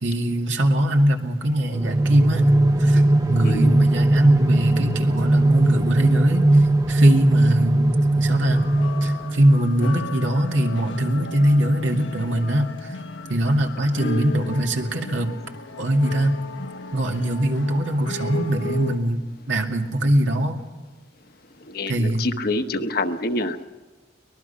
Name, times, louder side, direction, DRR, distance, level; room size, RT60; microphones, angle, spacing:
voice 1, 0.0-2.5 2.8-3.0 3.3-8.7 9.0-13.0 13.3-15.3 15.8-16.4 16.9-20.6 21.9-22.2, right 1 dB, 80° right, 2 dB, 2.3 m, -22 dB
sound 1, 1.7-9.6, right 1 dB, 20° right, 0.8 m, -19 dB
voice 2, 3.4-3.7 21.7-23.6, left 2 dB, 55° left, 7 dB, 1.1 m, -26 dB
sound 2, 8.5-19.0, left 2 dB, 85° left, 1.3 m, -35 dB
23.5 x 20.0 x 5.7 m, 1.3 s
head